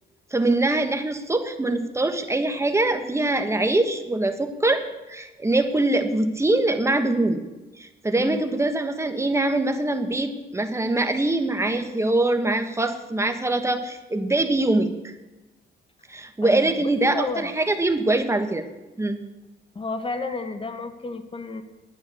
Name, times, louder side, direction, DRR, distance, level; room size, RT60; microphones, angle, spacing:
voice 1, 0.3-7.4 7.8-15.1 16.1-18.6 19.0-19.2, right 2 dB, 15° right, 7 dB, 1.3 m, -23 dB
voice 2, 16.4-17.5 19.7-21.6, left 3 dB, 25° left, 9 dB, 1.4 m, -31 dB
10.5 x 9.1 x 6.9 m, 1.1 s
cardioid pair, 90°, 20 cm